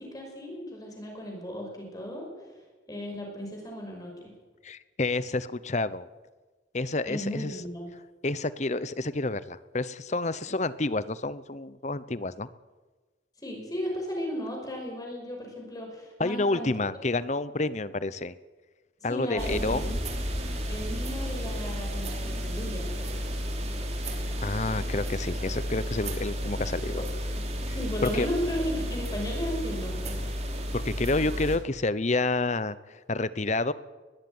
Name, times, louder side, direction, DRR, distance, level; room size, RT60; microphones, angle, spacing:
voice 1, 0.0-2.3 2.9-4.3 7.1-7.9 13.4-16.7 19.1-19.8 20.7-23.3 27.7-30.2, equal, 20° left, 0 dB, 5.7 m, -35 dB
voice 2, 4.6-6.1 6.7-7.6 8.2-12.5 16.2-18.3 19.0-20.0 24.4-27.0 28.0-28.3 30.7-33.7, left 2 dB, 40° left, 16 dB, 0.9 m, -29 dB
sound 1, 19.4-31.6, equal, 35° right, 3.1 m, -32 dB
21.0 x 15.0 x 9.6 m, 1.3 s
head